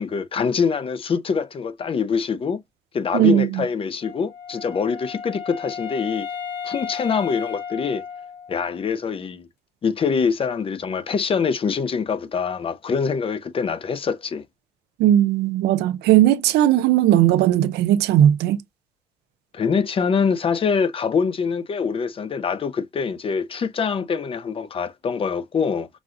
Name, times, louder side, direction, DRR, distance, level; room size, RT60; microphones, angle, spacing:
voice 1, 0.0-2.6 2.9-6.3 6.6-8.0 8.5-9.5 9.8-14.4 19.5-25.9, left 6 dB, 35° left, 0.6 m, -24 dB
voice 2, 3.1-3.6 15.0-18.6, right 12 dB, 80° right, 0.5 m, -17 dB
Wind instrument woodwind instrument, 4.0-8.8, left 7 dB, 75° left, 2.9 m, -34 dB
6.0 x 2.4 x 2.5 m
cardioid pair, 110°, 17 cm